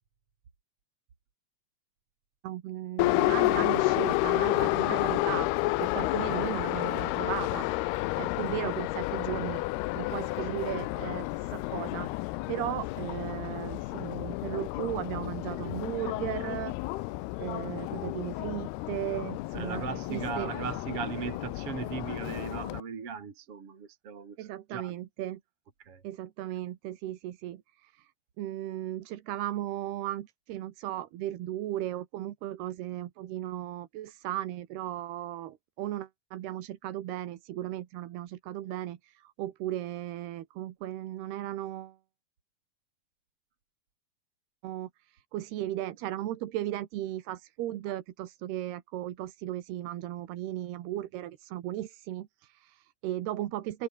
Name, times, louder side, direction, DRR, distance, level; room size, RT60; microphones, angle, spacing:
voice 1, 2.4-9.6 10.0-12.1 12.5-16.8 17.4-20.5 24.4-25.4 26.0-28.1 28.4-42.0 44.6-53.9, right 13 dB, 90° right, 3.5 m, -36 dB
Subway metro underground, 3.0-22.8, left 20 dB, 85° left, 2.7 m, -31 dB
voice 2, 19.5-24.9 25.8-26.0, right 6 dB, 40° right, 3.4 m, -38 dB
omnidirectional pair, 4.5 m